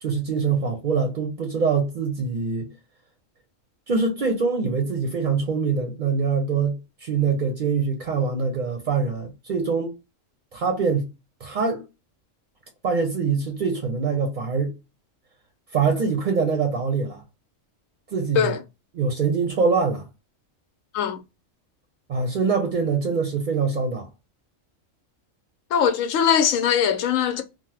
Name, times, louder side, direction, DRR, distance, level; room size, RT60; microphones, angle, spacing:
voice 1, 0.0-2.7 3.9-9.9 10.5-11.1 11.4-11.8 12.8-14.7 15.7-17.2 18.1-18.5 18.9-20.0 22.1-24.1, right 5 dB, 50° right, 0.6 m, -24 dB
voice 2, 25.7-27.4, left 8 dB, 85° left, 1.0 m, -21 dB
2.9 x 2.1 x 3.2 m
omnidirectional pair, 1.3 m